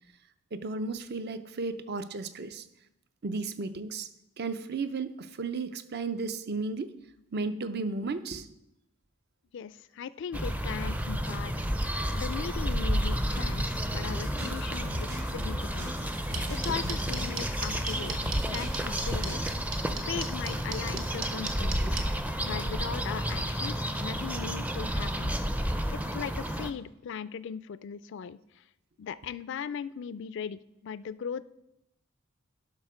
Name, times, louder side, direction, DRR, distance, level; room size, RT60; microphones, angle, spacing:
voice 1, 0.5-2.7 3.2-4.1 4.4-6.9 7.3-8.5, right 3 dB, 50° right, 12 dB, 0.6 m, -34 dB
voice 2, 9.5-11.5 12.1-18.2 18.5-19.4 20.0-22.0 22.4-28.6 29.0-31.4, left 7 dB, 60° left, 16 dB, 0.4 m, -39 dB
sound 1, 10.3-26.7, equal, 5° right, 0.5 m, -31 dB
sound 2, 14.0-19.5, equal, 85° right, 3.6 m, -38 dB
sound 3, 16.3-22.0, right 6 dB, 70° right, 1.3 m, -35 dB
11.5 x 5.8 x 4.9 m, 0.84 s
head